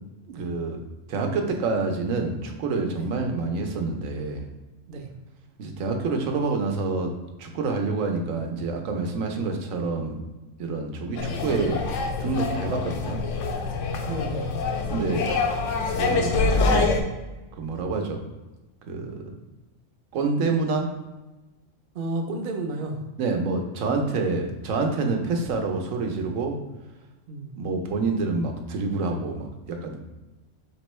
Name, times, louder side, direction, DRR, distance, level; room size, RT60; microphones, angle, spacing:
voice 1, 0.4-0.8 1.1-4.5 5.6-7.1 7.4-10.2 10.6-11.8 12.2-13.2 14.9-15.3 15.9-16.9 17.5-18.2 18.9-19.3 20.1-20.9 23.2-26.6 27.6-30.0, right 3 dB, 85° right, 3 dB, 1.1 m, -27 dB
sound 1, 11.2-17.0, left 4 dB, 75° left, 0.9 m, -25 dB
voice 2, 14.1-14.5 21.9-23.0 27.3-27.5, right 2 dB, 55° right, 3 dB, 0.6 m, -31 dB
4.3 x 3.6 x 3.1 m, 1.1 s
omnidirectional pair, 1.3 m